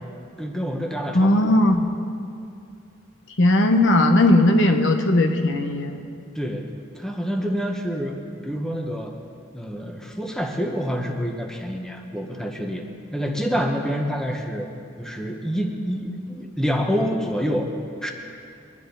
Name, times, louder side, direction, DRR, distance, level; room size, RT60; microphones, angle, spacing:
voice 1, 0.4-1.5 6.3-9.1 9.5-12.8 13.1-14.7 15.0-17.7 18.0-18.1, equal, 5° left, 1 dB, 1.0 m, -27 dB
voice 2, 1.1-1.9 3.4-6.0, left 1 dB, 65° left, 4 dB, 1.1 m, -18 dB
23.0 x 10.5 x 4.0 m, 2.5 s
head